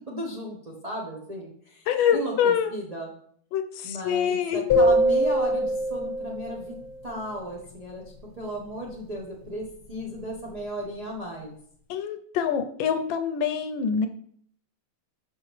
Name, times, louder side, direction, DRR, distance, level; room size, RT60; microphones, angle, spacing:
voice 1, 0.1-3.1 3.8-6.7 7.0-11.6, right 1 dB, 85° right, -3 dB, 0.3 m, -35 dB
voice 2, 1.9-2.7 3.5-4.9 11.9-14.1, left 7 dB, 80° left, 7 dB, 1.3 m, -25 dB
sound 1, 4.7-7.0, equal, 50° left, 0.8 m, -23 dB
5.7 x 5.5 x 3.1 m, 0.63 s
omnidirectional pair, 2.2 m